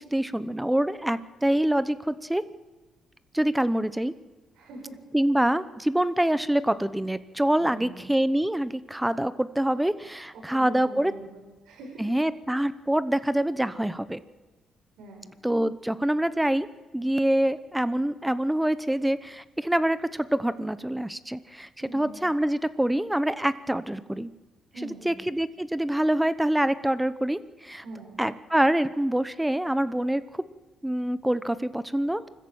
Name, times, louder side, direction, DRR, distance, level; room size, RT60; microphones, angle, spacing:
voice 1, 0.0-2.4 3.3-4.1 5.1-11.1 12.0-14.2 15.4-16.7 16.9-24.3 25.0-27.8 28.2-30.4 30.8-32.3, right 1 dB, 5° right, 14 dB, 0.9 m, -25 dB
voice 2, 4.5-5.0 7.6-8.0 10.3-12.0 15.0-15.3 21.8-22.2 24.7-25.2 27.8-28.1, right 2 dB, 85° right, 1 dB, 6.1 m, -43 dB
25.0 x 14.0 x 8.8 m, 1.2 s
cardioid pair, 90°, 0 cm